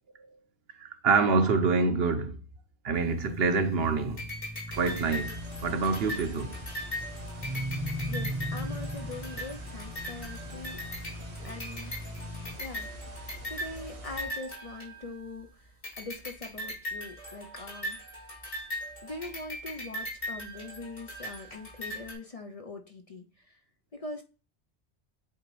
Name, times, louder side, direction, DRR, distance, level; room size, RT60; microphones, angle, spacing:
voice 1, 0.8-2.4 2.8-4.3 4.8-6.6, right 4 dB, 70° right, 1.0 m, -26 dB
sound 1, 2.9-12.5, left 1 dB, 15° right, 0.8 m, -39 dB
sound 2, 4.2-15.4 15.8-22.1, equal, 55° left, 2.9 m, -40 dB
sound 3, 4.7-14.2, equal, 90° right, 1.7 m, -44 dB
voice 2, 8.1-10.8 11.4-11.9 12.6-12.9 13.5-15.5 16.0-18.0 19.0-23.6 23.9-24.2, left 3 dB, 40° left, 0.6 m, -42 dB
8.2 x 3.8 x 3.1 m
omnidirectional pair, 1.1 m